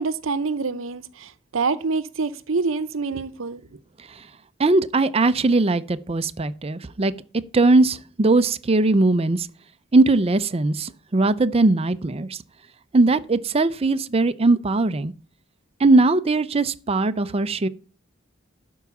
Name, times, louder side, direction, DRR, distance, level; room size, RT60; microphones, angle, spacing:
voice 1, 0.0-3.6, right 4 dB, 75° right, 0.7 m, -26 dB
voice 2, 4.6-7.1 7.5-9.5 9.9-12.4 12.9-15.1 15.8-17.7, right 2 dB, 30° right, 0.5 m, -19 dB
12.0 x 4.7 x 7.0 m
head